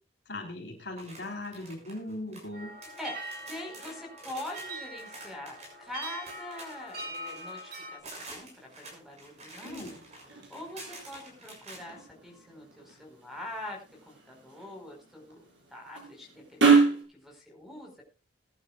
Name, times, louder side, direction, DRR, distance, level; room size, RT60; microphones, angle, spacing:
voice 1, 0.3-2.7 9.6-10.1, left 1 dB, 60° left, 1 dB, 4.2 m, -39 dB
sound 1, 0.9-2.5 2.8-11.8, right 2 dB, 35° right, 6.4 m, -48 dB
sound 2, 2.5-8.0, right 2 dB, 50° right, 3.3 m, -42 dB
voice 2, 3.5-8.5 8.8-9.9 10.5-13.8 14.1-15.4 15.7-18.0, left 1 dB, ahead, 1 dB, 4.8 m, -43 dB
sound 3, 8.3-17.0, right 4 dB, 70° right, 6.8 m, -30 dB
22.0 x 11.0 x 2.4 m, 0.32 s
head